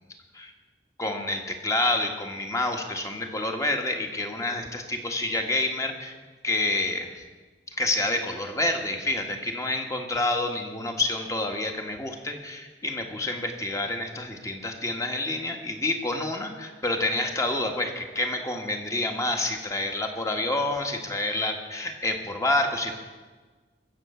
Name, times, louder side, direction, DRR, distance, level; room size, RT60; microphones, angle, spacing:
voice 1, 1.0-6.2 6.4-7.2 7.7-22.9, left 2 dB, 20° left, 3 dB, 1.5 m, -28 dB
21.5 x 7.8 x 7.0 m, 1.4 s
head